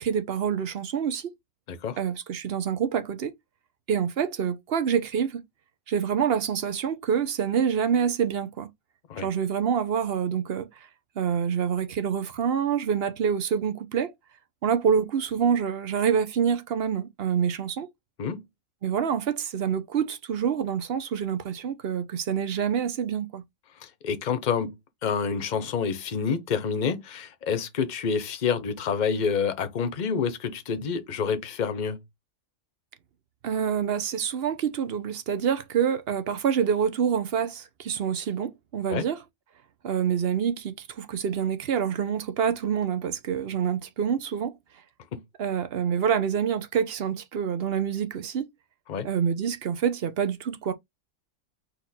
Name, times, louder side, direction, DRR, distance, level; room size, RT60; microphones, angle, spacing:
voice 1, 0.0-1.3 2.0-3.3 3.9-5.4 5.9-8.7 9.2-10.7 11.2-14.1 14.6-17.9 18.8-23.4 33.4-39.2 39.8-44.5 45.4-48.5 49.0-50.7, right 7 dB, 55° right, 0.9 m, -26 dB
voice 2, 23.8-24.8 25.0-32.0 38.9-39.1 45.1-45.2 48.9-49.1, left 6 dB, 40° left, 0.8 m, -28 dB
4.2 x 2.9 x 4.1 m
omnidirectional pair, 1.4 m